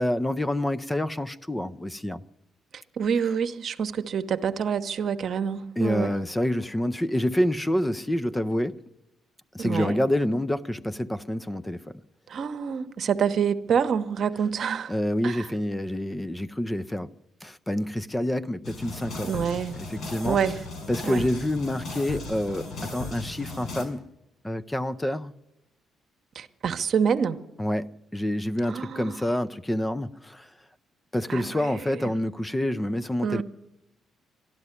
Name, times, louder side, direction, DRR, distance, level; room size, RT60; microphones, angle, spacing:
voice 1, 0.0-2.2 5.8-8.8 9.5-12.0 14.9-17.1 17.4-19.3 19.8-20.4 20.9-24.0 24.4-25.3 27.6-30.5 31.1-33.4, left 1 dB, 10° left, 0.5 m, -27 dB
voice 2, 3.0-6.1 9.6-10.0 12.3-14.9 15.2-15.5 19.2-19.8 20.2-20.6 21.0-21.3 26.3-27.4 28.7-29.2 31.3-31.7 33.2-33.4, right 7 dB, 60° right, 0.9 m, -27 dB
sound 1, 18.6-23.9, left 3 dB, 65° left, 4.8 m, -37 dB
12.0 x 12.0 x 9.8 m
cardioid pair, 90°, 0 cm